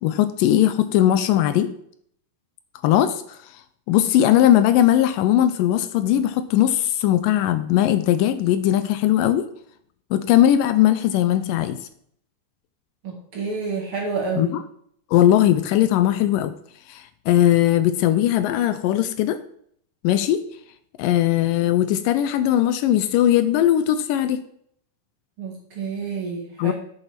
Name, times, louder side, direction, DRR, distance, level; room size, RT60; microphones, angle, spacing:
voice 1, 0.0-1.7 2.8-3.6 3.9-9.5 10.1-11.8 14.4-14.6 15.1-16.5 16.9-19.4 20.0-20.4 21.0-24.4 26.6-26.7, left 12 dB, 80° left, 12 dB, 2.1 m, -19 dB
voice 2, 13.0-14.6 25.4-26.7, right 4 dB, 45° right, 0 dB, 2.4 m, -29 dB
8.2 x 6.8 x 5.9 m, 0.67 s
omnidirectional pair, 4.0 m